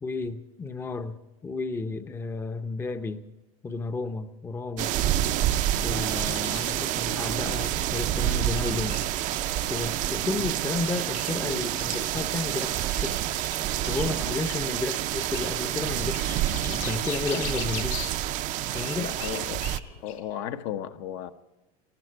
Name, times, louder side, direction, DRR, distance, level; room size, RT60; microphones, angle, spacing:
voice 1, 0.0-3.2 3.6-5.1 5.8-9.0 9.7-13.2 13.9-18.0 18.7-19.1, left 3 dB, 15° left, 0.7 m, -32 dB
sound 1, 4.8-19.8, right 13 dB, 45° right, 0.6 m, -28 dB
sound 2, 5.6-20.2, left 9 dB, 80° left, 4.4 m, -43 dB
voice 2, 19.0-19.6 20.0-21.3, left 10 dB, 60° left, 1.0 m, -34 dB
19.5 x 14.0 x 4.6 m
supercardioid pair, 130°, 18 cm